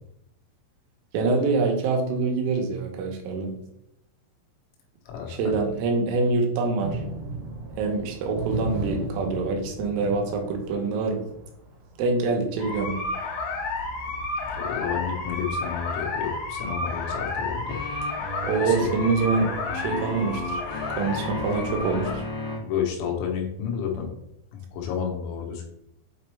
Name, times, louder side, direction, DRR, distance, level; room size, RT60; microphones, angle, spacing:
voice 1, 1.1-3.5 5.3-7.0 7.8-11.2 12.0-13.0 18.4-20.6 20.9-22.3, right 3 dB, 85° right, 3 dB, 3.8 m, -25 dB
voice 2, 5.1-5.6 14.6-17.8 18.6-18.9 22.6-24.1 24.5-25.7, left 7 dB, 90° left, 1 dB, 4.0 m, -31 dB
sound 1, 6.8-12.1 13.1-13.2 13.6-13.7, right 2 dB, 65° right, 1.9 m, -35 dB
sound 2, 12.6-22.1, left 3 dB, 75° left, 2.1 m, -31 dB
sound 3, 17.7-22.6, left 1 dB, 45° left, 0.8 m, -34 dB
8.7 x 4.2 x 3.4 m, 0.78 s
omnidirectional pair, 5.8 m